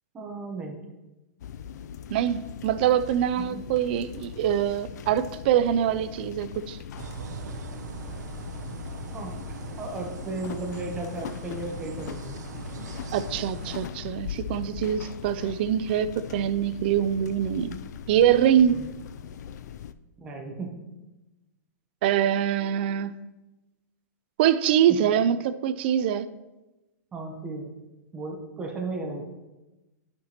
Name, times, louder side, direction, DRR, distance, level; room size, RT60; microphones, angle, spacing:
voice 1, 0.1-0.8 3.4-3.6 9.1-9.4 9.8-12.4 18.7-18.9 20.2-20.8 24.9-25.0 27.1-27.7 28.1-29.2, right 3 dB, 10° right, 1 dB, 0.8 m, -35 dB
sound 1, 1.4-19.9, left 8 dB, 75° left, 0.4 m, -40 dB
voice 2, 2.1-6.8 13.1-17.8 18.1-18.8 22.0-23.1 24.4-26.3, right 10 dB, 35° right, 14 dB, 0.3 m, -24 dB
sound 2, 7.0-13.9, right 6 dB, 80° right, 0.7 m, -40 dB
11.5 x 5.9 x 2.9 m, 1.1 s
supercardioid pair, 170°, 9 cm